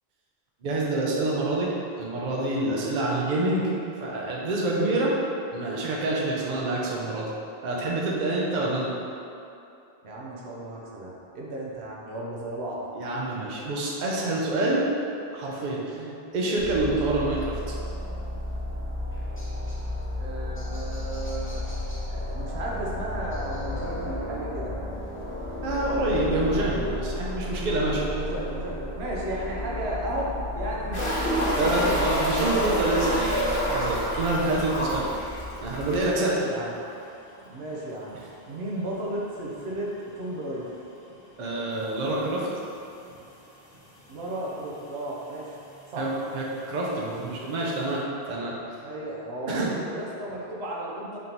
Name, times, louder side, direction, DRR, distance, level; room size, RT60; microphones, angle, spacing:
voice 1, 0.6-3.7 4.0-5.1 5.5-7.3 7.6-8.9 12.9-14.8 15.3-16.1 16.3-17.6 25.6-28.0 31.6-35.1 35.6-36.5 41.4-42.5 43.1-43.2 46.0-48.6 49.5-49.7, right 2 dB, 55° right, -3 dB, 0.7 m, -27 dB
voice 2, 8.5-8.9 10.0-12.8 15.9-16.2 20.2-21.6 22.1-24.7 27.9-30.3 30.6-32.0 35.9-36.7 37.4-38.2 38.5-39.9 40.2-40.7 44.1-45.5 45.9-46.1 48.8-51.2, right 1 dB, 80° right, -4 dB, 1.0 m, -34 dB
sound 1, 16.6-36.2, left 1 dB, 20° left, 0.4 m, -33 dB
sound 2, 30.9-36.3 36.6-36.7 37.0-37.1 39.9-40.0 41.7-41.8 42.6-42.7 42.9-43.0 43.9-44.0 44.2-44.8 45.7-45.8, equal, 60° left, 1.2 m, -28 dB
3.7 x 2.9 x 3.8 m, 2.7 s
omnidirectional pair, 1.1 m